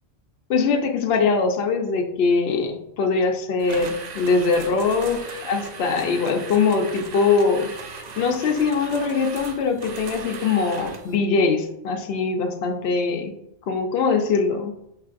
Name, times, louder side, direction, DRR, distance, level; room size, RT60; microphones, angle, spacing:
voice 1, 0.5-7.7 8.2-13.4 13.7-14.7, left 4 dB, 60° left, 4 dB, 0.8 m, -22 dB
sound 1, 3.6-11.2, right 4 dB, 65° right, 0.4 m, -37 dB
5.7 x 3.2 x 2.4 m, 0.82 s
omnidirectional pair, 1.3 m